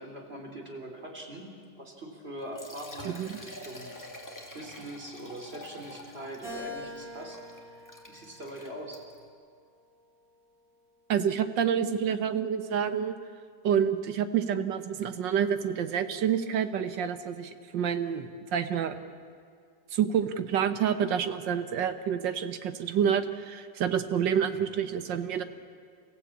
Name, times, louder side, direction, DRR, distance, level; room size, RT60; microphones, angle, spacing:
voice 1, 0.0-1.5 1.8-3.9 4.5-7.4 7.8-9.0, right 1 dB, 35° right, 1 dB, 3.5 m, -42 dB
Liquid, 2.4-9.3, left 1 dB, 10° left, 2.3 m, -47 dB
voice 2, 3.1-3.4 11.1-13.2 13.6-19.0 19.9-25.4, right 8 dB, 85° right, 10 dB, 1.8 m, -28 dB
Keyboard (musical), 6.4-8.9 9.5-10.7, left 1 dB, 50° right, 6.8 m, -45 dB
29.5 x 15.5 x 8.5 m, 2.1 s
omnidirectional pair, 1.9 m